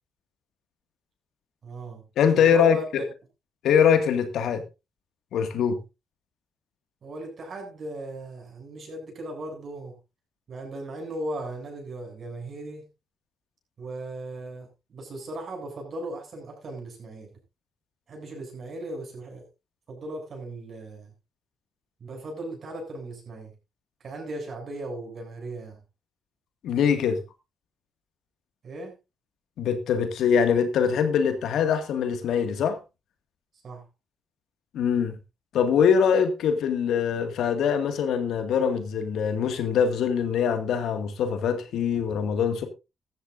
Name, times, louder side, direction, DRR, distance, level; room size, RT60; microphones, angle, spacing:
voice 1, 1.6-2.0 2.3-2.9 7.0-10.0 10.5-12.9 13.8-17.4 18.1-19.4 19.9-21.1 22.0-23.5 24.0-25.8 28.6-29.0 33.6-33.8, right 1 dB, 55° right, 7.7 m, -37 dB
voice 2, 2.2-3.0 3.6-4.6 5.3-5.8 26.6-27.2 29.6-32.8 34.7-35.2 35.5-42.7, left 7 dB, 80° left, 2.1 m, -23 dB
15.5 x 13.5 x 2.7 m
cardioid pair, 80°, 0 cm